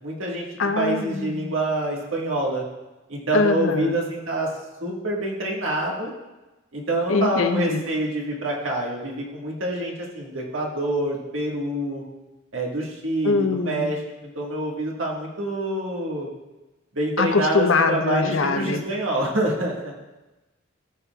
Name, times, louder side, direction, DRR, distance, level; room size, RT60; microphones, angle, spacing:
voice 1, 0.0-2.6 3.1-4.5 4.8-6.1 6.7-12.0 12.5-16.3 16.9-19.9, right 1 dB, 80° right, -2 dB, 1.6 m, -26 dB
voice 2, 0.6-1.5 3.3-3.9 7.1-7.8 13.2-13.9 17.2-18.8, left 4 dB, 85° left, 8 dB, 0.6 m, -23 dB
13.5 x 6.2 x 2.3 m, 1.1 s
head